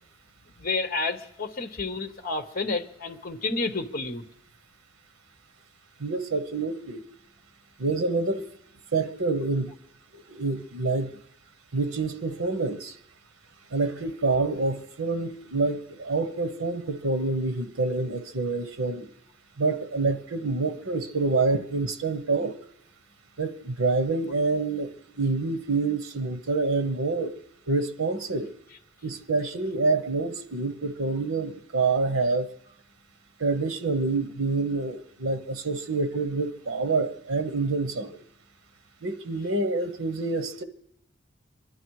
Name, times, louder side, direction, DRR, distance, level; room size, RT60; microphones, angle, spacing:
voice 1, 0.6-4.2, left 3 dB, 45° left, 6 dB, 1.1 m, -30 dB
voice 2, 6.0-7.0 7.8-8.5 8.9-9.7 10.1-11.2 11.7-12.9 13.7-19.1 19.6-22.6 23.4-24.9 25.2-27.3 27.7-28.5 29.0-32.5 33.4-38.2 39.0-40.6, right 3 dB, 85° right, 10 dB, 1.0 m, -27 dB
25.5 x 11.0 x 4.8 m, 0.80 s
head